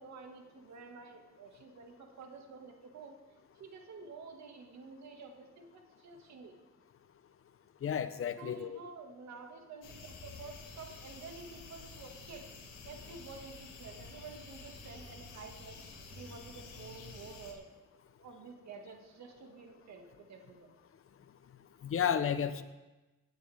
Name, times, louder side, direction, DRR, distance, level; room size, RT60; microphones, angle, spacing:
voice 1, 0.0-3.2 3.5-6.5 8.4-12.5 12.9-15.8 16.1-17.7 18.2-20.7, right 4 dB, 65° right, 2 dB, 2.1 m, -50 dB
voice 2, 7.8-8.8 21.8-22.6, left 8 dB, 45° left, 12 dB, 0.9 m, -32 dB
sound 1, 9.8-17.5, left 4 dB, 90° left, 1.8 m, -50 dB
17.0 x 9.6 x 3.6 m, 1.1 s
cardioid pair, 90°, 30 cm